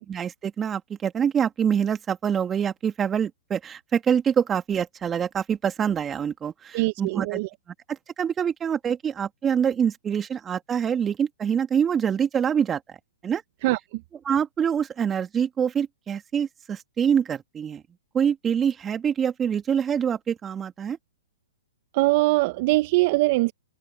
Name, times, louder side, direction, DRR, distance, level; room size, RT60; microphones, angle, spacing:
voice 1, 0.1-7.4 7.9-12.8 13.2-13.4 14.2-17.8 18.1-21.0, right 8 dB, 20° right, 2.8 m, -25 dB
voice 2, 6.7-7.5 13.6-13.8 21.9-23.5, right 22 dB, 45° right, 1.3 m, -22 dB
hypercardioid pair, 125°, 0 cm